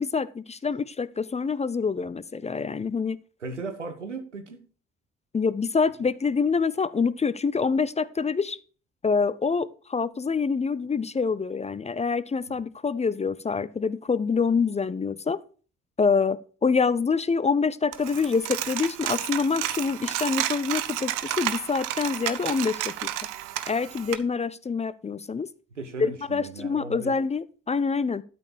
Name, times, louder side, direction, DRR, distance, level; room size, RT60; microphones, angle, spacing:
voice 1, 0.0-3.2 5.3-8.6 9.0-15.4 16.0-23.1 23.7-25.5 26.0-28.2, left 5 dB, 20° left, 18 dB, 0.5 m, -26 dB
voice 2, 3.4-4.6 12.5-12.6 25.7-27.1, right 3 dB, 90° right, 7 dB, 1.1 m, -37 dB
Coin (dropping), 17.9-24.1, right 14 dB, 65° right, 0.9 m, -31 dB
12.0 x 4.3 x 7.1 m, 0.40 s
figure-of-eight pair, 45°, 35 cm